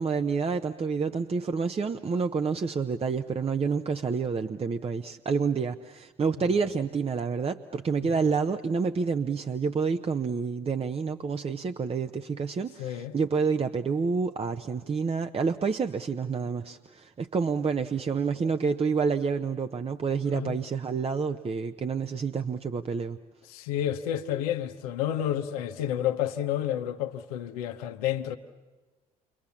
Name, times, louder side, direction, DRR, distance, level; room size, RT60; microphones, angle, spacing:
voice 1, 0.0-23.2, right 5 dB, 30° right, 1.0 m, -28 dB
voice 2, 12.8-13.1 20.3-20.6 23.5-28.4, left 11 dB, 80° left, 1.1 m, -30 dB
29.0 x 24.5 x 7.2 m
hypercardioid pair, 60°, 19 cm